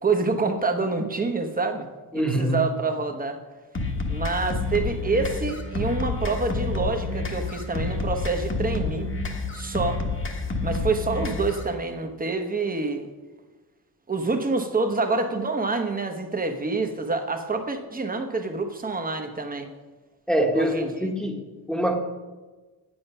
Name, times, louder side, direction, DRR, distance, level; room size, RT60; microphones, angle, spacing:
voice 1, 0.0-1.9 2.1-3.4 4.1-9.1 9.5-10.0 10.6-13.1 14.1-19.7 20.5-21.1, right 3 dB, 20° right, 5 dB, 1.0 m, -27 dB
voice 2, 2.1-2.6 20.3-22.0, right 1 dB, ahead, 3 dB, 1.2 m, -25 dB
sound 1, 3.8-11.7, left 3 dB, 30° left, 1.3 m, -29 dB
8.9 x 8.6 x 5.5 m, 1.3 s
cardioid pair, 130°, 38 cm